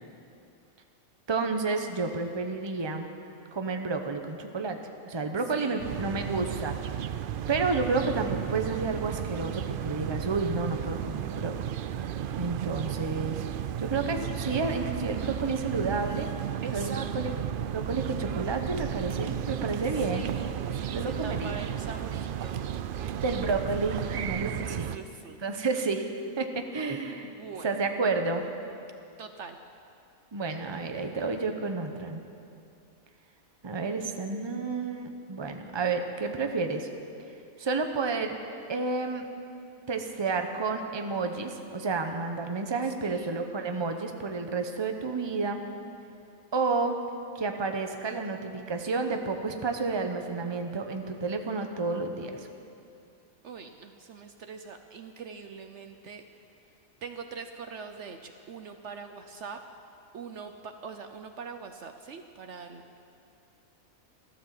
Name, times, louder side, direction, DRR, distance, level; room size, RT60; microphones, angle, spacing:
voice 1, 1.3-3.1 3.5-4.8 5.0-6.8 7.5-11.8 12.4-13.4 13.8-16.3 16.7-17.3 17.7-20.3 20.9-21.6 23.2-24.9 25.4-26.1 26.4-27.3 27.6-28.5 30.3-32.2 33.6-36.9 37.6-38.4 38.7-39.3 39.9-45.6 46.5-47.0 47.3-52.5, right 4 dB, 20° right, 5 dB, 0.9 m, -30 dB
voice 2, 5.6-6.4 16.6-17.1 17.3-17.6 19.9-23.5 24.5-25.4 27.2-27.7 29.2-29.6 42.8-43.4 53.4-56.2 57.0-59.6 60.1-62.8, right 5 dB, 60° right, 6 dB, 1.0 m, -43 dB
sound 1, 5.8-25.0, right 10 dB, 80° right, 0.4 m, -34 dB
14.5 x 13.0 x 7.5 m, 2.6 s
omnidirectional pair, 1.4 m